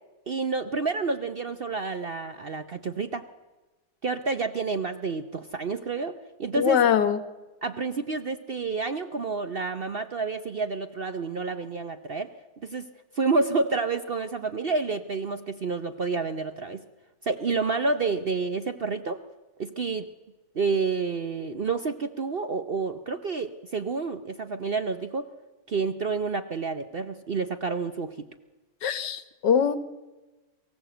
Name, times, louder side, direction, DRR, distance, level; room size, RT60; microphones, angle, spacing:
voice 1, 0.3-3.2 4.0-6.8 7.6-12.3 12.6-12.9 13.1-16.8 17.2-19.2 19.6-20.1 20.5-25.3 25.7-28.2, right 4 dB, 50° right, 9 dB, 0.7 m, -29 dB
voice 2, 6.5-7.2 28.8-29.8, left 8 dB, 85° left, 12 dB, 1.8 m, -22 dB
23.0 x 15.5 x 7.8 m, 1.2 s
omnidirectional pair, 1.8 m